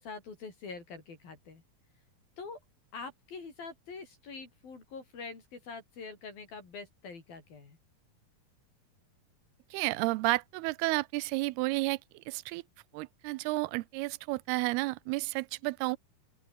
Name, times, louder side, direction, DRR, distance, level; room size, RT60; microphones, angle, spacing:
voice 1, 0.0-1.6 2.4-2.6 2.9-7.8, left 4 dB, 65° left, 7.4 m, -45 dB
voice 2, 9.7-12.6 12.9-16.0, right 22 dB, 85° right, 2.6 m, -31 dB
open air
omnidirectional pair, 4.4 m